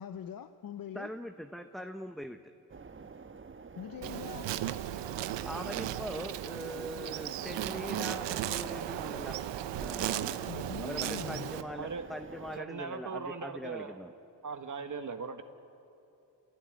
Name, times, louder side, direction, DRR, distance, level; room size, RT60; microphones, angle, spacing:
voice 1, 0.0-1.1 3.8-4.5 10.4-11.5, left 9 dB, 55° left, 9 dB, 1.0 m, -42 dB
voice 2, 0.9-2.4 5.5-9.4 9.7-10.4 10.8-14.1, equal, ahead, 7 dB, 0.9 m, -42 dB
sound 1, 2.7-12.6, right 4 dB, 30° right, 1.2 m, -47 dB
Insect, 4.0-11.6, right 12 dB, 85° right, 1.0 m, -36 dB
voice 3, 11.7-12.1 12.6-14.0 14.4-15.4, right 5 dB, 45° right, 7 dB, 1.5 m, -39 dB
28.0 x 16.5 x 9.4 m, 2.7 s
cardioid pair, 75°, 42 cm